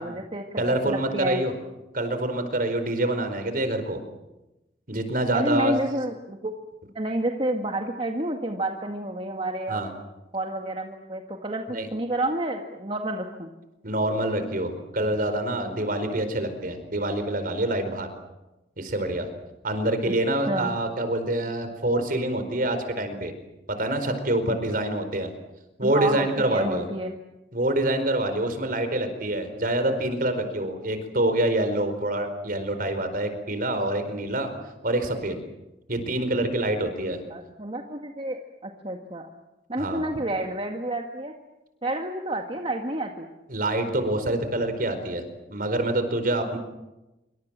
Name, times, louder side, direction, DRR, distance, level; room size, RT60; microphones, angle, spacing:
voice 1, 0.0-1.4 5.3-6.5 7.0-9.8 10.3-13.5 20.1-20.2 20.5-20.7 25.8-27.1 37.3-39.3 39.7-41.3 41.8-43.3, right 1 dB, 30° right, 3 dB, 1.9 m, -29 dB
voice 2, 0.6-1.5 1.9-4.0 4.9-5.8 9.7-9.9 11.7-11.9 13.8-18.1 18.8-19.3 19.6-23.3 23.8-25.3 25.8-26.9 27.5-34.5 34.8-35.4 35.9-37.2 39.8-40.0 43.5-45.2 45.5-46.6, right 1 dB, 50° right, 9 dB, 4.6 m, -26 dB
27.0 x 25.0 x 7.6 m, 0.99 s
head